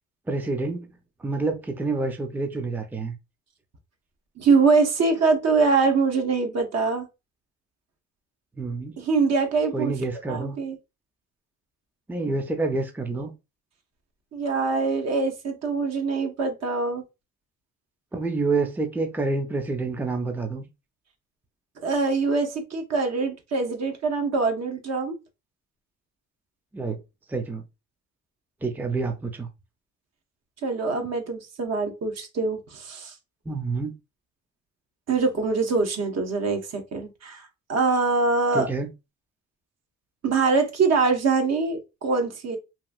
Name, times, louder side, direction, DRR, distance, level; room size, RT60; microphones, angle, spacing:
voice 1, 0.3-0.9 1.2-3.1 8.6-8.9 9.7-10.6 12.1-13.3 18.1-20.7 26.7-27.0 27.3-27.6 28.6-29.5 33.5-33.9 38.5-38.9, right 3 dB, 5° right, 0.5 m, -28 dB
voice 2, 4.4-7.1 9.0-9.9 10.3-10.8 14.3-17.0 21.8-25.2 30.6-33.1 35.1-38.7 40.2-42.6, right 4 dB, 60° right, 1.0 m, -24 dB
2.9 x 2.6 x 2.3 m
cardioid pair, 90°, 30 cm